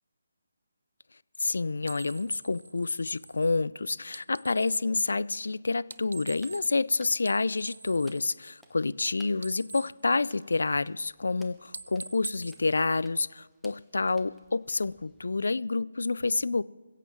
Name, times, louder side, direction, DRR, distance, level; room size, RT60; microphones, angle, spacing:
voice 1, 1.4-16.6, left 3 dB, 75° left, 0.4 m, -28 dB
sound 1, 1.8-4.9 5.8-6.9 7.1-9.0 9.3-10.9 11.2-11.4 11.7-13.5, right 3 dB, 75° right, 0.3 m, -45 dB
sound 2, 5.8-15.6, equal, ahead, 0.8 m, -62 dB
21.5 x 8.1 x 4.5 m
figure-of-eight pair, 160°, 0 cm